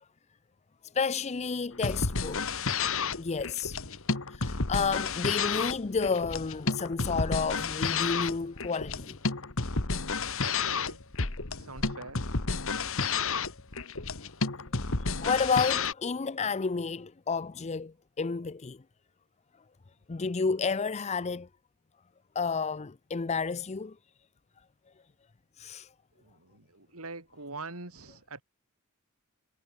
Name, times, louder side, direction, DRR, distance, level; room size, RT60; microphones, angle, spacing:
voice 1, 0.9-2.4 3.2-3.8 4.3-9.2 15.2-18.8 20.1-21.5 22.4-23.9 25.6-25.9, left 5 dB, 30° left, 0.5 m, -31 dB
sound 1, 1.7-15.9, left 4 dB, 65° left, 2.0 m, -31 dB
voice 2, 10.4-11.0 11.6-12.2 26.2-28.4, right 3 dB, 75° right, 4.2 m, -44 dB
head